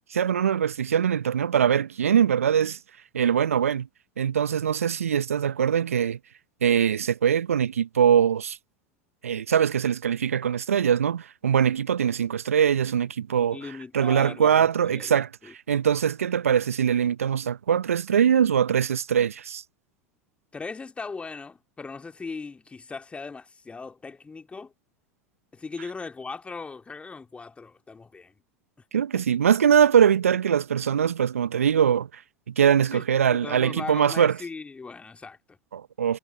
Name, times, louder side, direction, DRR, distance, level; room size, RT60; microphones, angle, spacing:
voice 1, 0.1-2.8 3.1-3.9 4.2-6.2 6.6-8.6 9.2-13.6 13.9-15.3 15.7-19.6 28.9-32.1 32.5-34.4 35.7-36.2, right 8 dB, 75° right, 0.9 m, -22 dB
voice 2, 13.5-15.5 20.5-24.7 25.5-28.3 32.9-33.0 33.3-35.6, left 4 dB, 15° left, 2.5 m, -39 dB
figure-of-eight pair, 80°, 8 cm